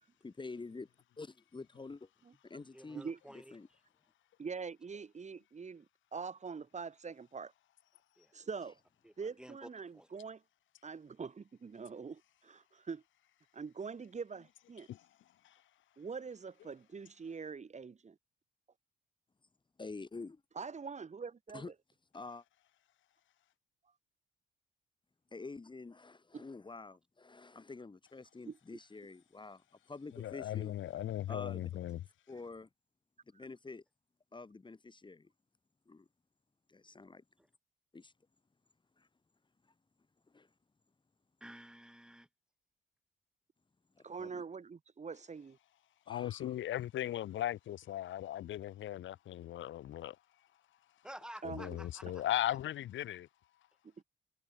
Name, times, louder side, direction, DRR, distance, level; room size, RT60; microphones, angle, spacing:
voice 1, 0.2-0.9 1.2-2.1 2.4-3.1 3.5-3.7 19.8-20.4 21.5-21.7 22.1-22.4 25.3-30.7 31.3-31.7 32.3-32.7 33.3-33.8 34.3-35.3 35.9-36.1 36.7-37.2 37.9-38.1 39.0-39.1 40.3-40.5 43.9-44.4 46.1-46.5, left 3 dB, 25° left, 2.9 m, -48 dB
voice 2, 2.7-3.8 8.2-8.3 9.0-10.1 37.4-37.5 41.4-42.3 51.0-52.2, right 1 dB, 5° right, 7.0 m, -52 dB
voice 3, 4.4-5.8 6.1-7.5 8.3-8.8 9.2-10.4 10.8-13.0 13.5-14.9 16.0-18.1 20.5-21.6 26.3-26.4 28.5-28.6 44.0-45.6 51.4-51.8 54.0-54.1, right 5 dB, 35° right, 3.0 m, -44 dB
voice 4, 30.1-32.0 46.1-50.2 51.4-53.3, left 12 dB, 75° left, 1.7 m, -38 dB
cardioid pair, 90°, 20 cm